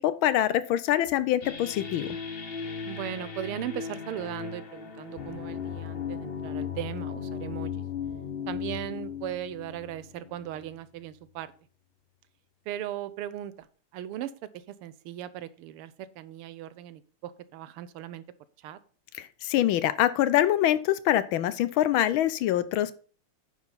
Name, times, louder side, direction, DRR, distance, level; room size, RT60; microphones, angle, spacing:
voice 1, 0.0-2.2 19.2-22.9, left 12 dB, 75° left, 14 dB, 1.4 m, -25 dB
sound 1, 1.4-10.8, left 7 dB, 45° left, 0.8 m, -37 dB
voice 2, 2.9-7.8 8.5-11.5 12.7-13.7 13.9-14.3 14.8-18.2 18.6-18.8, right 11 dB, 85° right, 15 dB, 1.6 m, -38 dB
9.3 x 5.0 x 5.5 m, 0.40 s
omnidirectional pair, 2.4 m